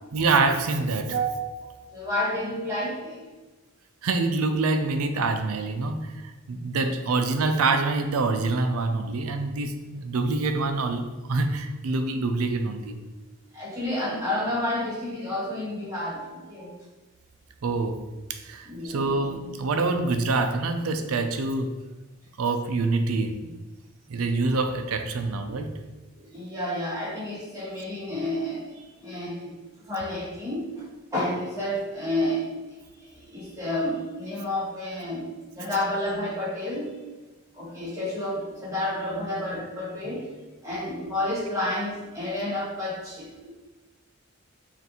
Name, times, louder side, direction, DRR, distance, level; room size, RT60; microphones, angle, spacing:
voice 1, 0.1-1.8 4.0-6.2 6.5-13.0 17.6-18.0 18.3-21.7 22.4-23.5 24.1-25.8, right 3 dB, 85° right, 7 dB, 0.4 m, -26 dB
voice 2, 1.6-3.2 6.7-6.8 13.5-16.7 18.6-19.3 25.5-25.6 26.1-29.5 29.9-30.8 31.1-32.4 33.2-35.3 35.5-36.9 37.5-40.3 40.6-43.5, left 1 dB, 15° right, -7 dB, 1.2 m, -30 dB
5.4 x 2.6 x 2.9 m, 1.2 s
head